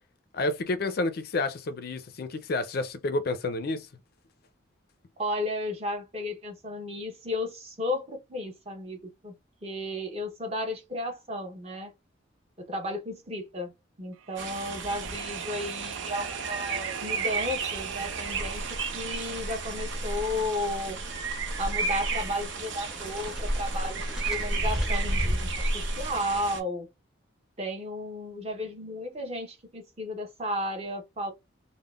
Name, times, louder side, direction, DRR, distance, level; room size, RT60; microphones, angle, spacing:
voice 1, 0.3-3.9, left 2 dB, 50° left, 0.4 m, -30 dB
voice 2, 5.2-9.3 9.6-11.9 12.7-13.7 14.0-21.0 21.6-26.9 27.6-31.3, left 1 dB, 30° right, 0.7 m, -34 dB
sound 1, 14.2-21.2, right 9 dB, 85° right, 0.3 m, -41 dB
sound 2, 14.4-26.6, right 4 dB, 65° right, 0.7 m, -34 dB
sound 3, 18.2-26.4, equal, ahead, 0.6 m, -34 dB
3.5 x 2.1 x 2.3 m
head